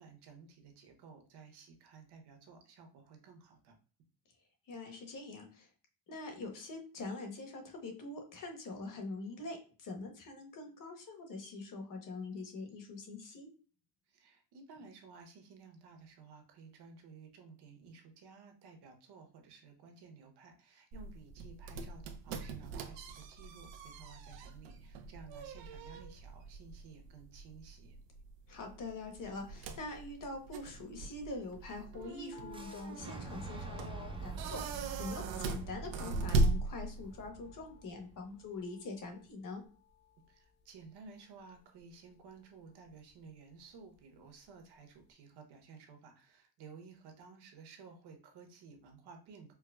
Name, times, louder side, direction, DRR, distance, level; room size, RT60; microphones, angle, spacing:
voice 1, 0.0-3.7 14.1-28.0 40.3-49.5, right 5 dB, 60° right, 4 dB, 1.0 m, -55 dB
voice 2, 4.7-5.7 6.1-13.5 28.5-39.6, left 3 dB, 45° left, 4 dB, 1.1 m, -44 dB
sound 1, 20.9-37.3, right 2 dB, 80° right, 0.6 m, -39 dB
sound 2, 32.3-44.6 44.9-45.0, left 10 dB, 75° left, 0.9 m, -61 dB
Fire / Explosion, 32.5-38.4, right 4 dB, 15° right, 0.4 m, -46 dB
4.5 x 2.0 x 2.3 m, 0.39 s
cardioid pair, 110°, 44 cm